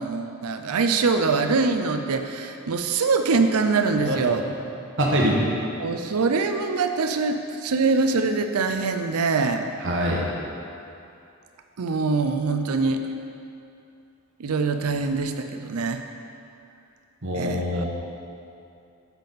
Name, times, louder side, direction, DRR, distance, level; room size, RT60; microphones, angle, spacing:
voice 1, 0.0-4.4 5.2-5.4 5.8-9.7 11.8-13.0 14.4-16.0 17.3-17.6, right 4 dB, 80° right, 7 dB, 0.5 m, -23 dB
voice 2, 5.0-5.4 9.8-10.2 17.2-17.8, equal, 55° right, -2 dB, 1.3 m, -23 dB
8.3 x 7.0 x 4.1 m, 2.6 s
head